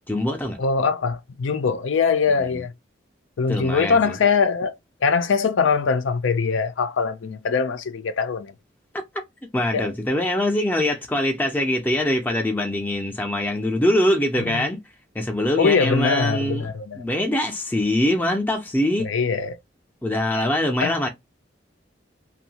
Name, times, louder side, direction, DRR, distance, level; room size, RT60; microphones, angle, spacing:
voice 1, 0.1-0.6 2.4-2.6 3.5-4.2 9.5-14.8 15.1-19.1 20.0-21.1, left 1 dB, 10° left, 0.5 m, -23 dB
voice 2, 0.6-2.7 3.4-4.8 5.0-8.5 9.7-9.9 14.5-14.7 15.6-17.0 19.0-19.6 20.8-20.9, left 5 dB, 85° left, 0.5 m, -22 dB
2.6 x 2.3 x 2.8 m
head